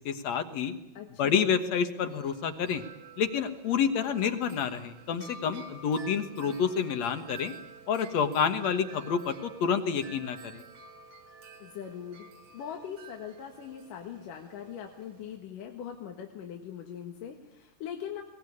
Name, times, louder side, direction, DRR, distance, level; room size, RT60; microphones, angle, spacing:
voice 1, 0.1-0.7 1.2-2.8 3.2-7.5 7.9-10.6, left 7 dB, 60° left, 8 dB, 2.4 m, -28 dB
voice 2, 0.9-1.5 11.6-12.3 12.5-18.2, left 9 dB, 80° left, 3 dB, 3.2 m, -41 dB
Wind chime, 2.0-15.4, right 4 dB, 55° right, 2.5 m, -50 dB
22.0 x 19.0 x 9.8 m, 0.91 s
omnidirectional pair, 3.8 m